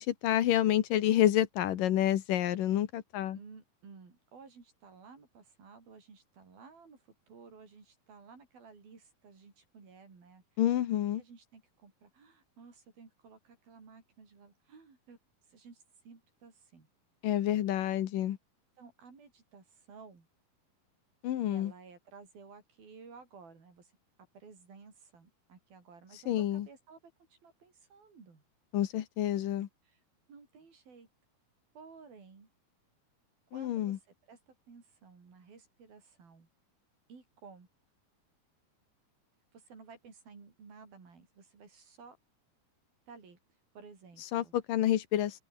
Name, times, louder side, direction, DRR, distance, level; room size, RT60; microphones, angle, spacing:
voice 1, 0.0-3.4 10.6-11.2 17.2-18.4 21.2-21.7 26.3-26.7 28.7-29.7 33.5-34.0 44.3-45.4, left 12 dB, 75° left, 2.9 m, -28 dB
voice 2, 3.3-10.4 11.2-15.2 15.5-16.9 18.8-20.3 21.5-23.9 24.3-27.0 27.3-28.4 29.9-30.0 30.3-31.1 31.7-32.5 33.5-36.5 37.1-37.7 39.5-42.2 43.1-43.4 43.7-44.5, right 5 dB, 85° right, 7.7 m, -55 dB
open air
omnidirectional pair, 4.1 m